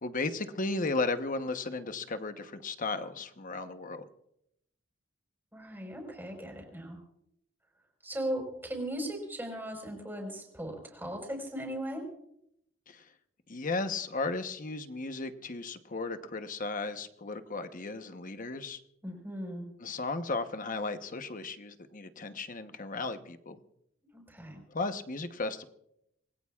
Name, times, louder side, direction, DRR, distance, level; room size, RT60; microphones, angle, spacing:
voice 1, 0.0-4.1 12.9-13.1 13.5-18.8 19.8-23.6 24.7-25.6, left 3 dB, 45° left, 9 dB, 1.0 m, -35 dB
voice 2, 5.5-7.0 8.0-12.1 19.0-19.7 24.1-24.6, right 1 dB, 10° right, 1 dB, 4.7 m, -38 dB
26.5 x 20.0 x 2.4 m, 0.77 s
head